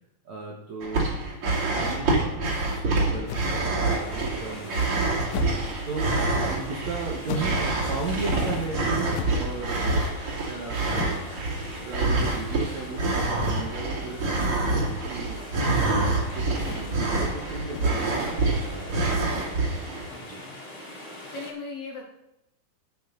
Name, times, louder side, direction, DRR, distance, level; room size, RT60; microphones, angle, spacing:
voice 1, 0.2-1.2 1.7-5.2 5.8-6.2 6.5-8.8 9.3-10.2 10.5-11.3 11.6-15.4 15.8-19.2 20.2-20.4, right 3 dB, 75° right, -2 dB, 1.6 m, -36 dB
sound 1, 0.8-20.1, right 2 dB, 35° right, 2.7 m, -26 dB
sound 2, 3.2-3.6 4.1-4.5 5.3-5.7 7.2-7.7 9.1-9.6 10.9-11.3 12.1-12.6 13.4-13.8 14.6-15.0 15.4-15.9 16.6-17.0 17.6-18.1, left 12 dB, 85° left, 2.6 m, -38 dB
sound 3, 3.8-21.5, left 1 dB, 40° left, 0.5 m, -42 dB
voice 2, 20.1-20.5 21.3-22.0, left 3 dB, 55° left, -2 dB, 3.2 m, -39 dB
13.0 x 8.0 x 3.9 m, 0.83 s
omnidirectional pair, 5.3 m